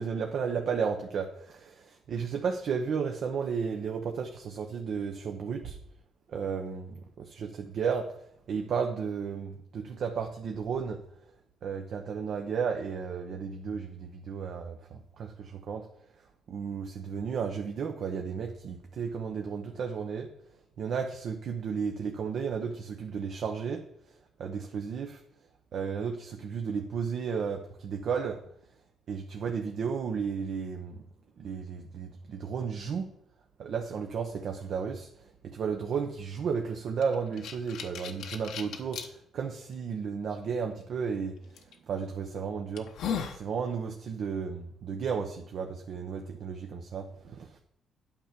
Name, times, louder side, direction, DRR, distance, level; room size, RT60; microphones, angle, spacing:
voice 1, 0.0-5.8 6.3-8.1 8.5-11.0 11.6-15.9 16.5-20.3 20.8-23.8 24.4-25.2 25.7-28.4 29.1-31.0 31.4-33.1 33.6-41.4 41.9-42.9 43.3-47.6, right 6 dB, 65° right, 3 dB, 0.8 m, -33 dB
sound 1, 37.0-39.1 39.7-39.8 41.6-41.7 42.3-42.4 42.8-43.4, left 7 dB, 80° left, 0.9 m, -36 dB
9.1 x 4.5 x 6.9 m, 0.75 s
cardioid pair, 90°, 0 cm